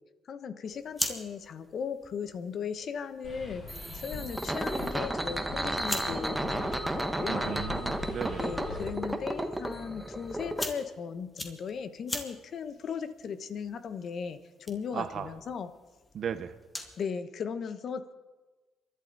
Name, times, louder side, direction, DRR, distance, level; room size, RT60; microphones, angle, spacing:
voice 1, 0.3-3.7 4.0-7.6 8.4-15.7 17.0-18.1, left 6 dB, 55° left, 11 dB, 1.1 m, -37 dB
sound 1, 0.6-17.1, left 1 dB, 15° left, 2.0 m, -44 dB
sound 2, 3.2-8.9, left 3 dB, 35° left, 5.6 m, -43 dB
sound 3, 3.7-10.7, right 1 dB, 10° right, 1.2 m, -33 dB
voice 2, 7.3-8.5 14.9-15.3 16.1-16.5, right 8 dB, 55° right, 12 dB, 1.0 m, -36 dB
28.0 x 11.5 x 4.1 m, 1.2 s
cardioid pair, 90°, 0 cm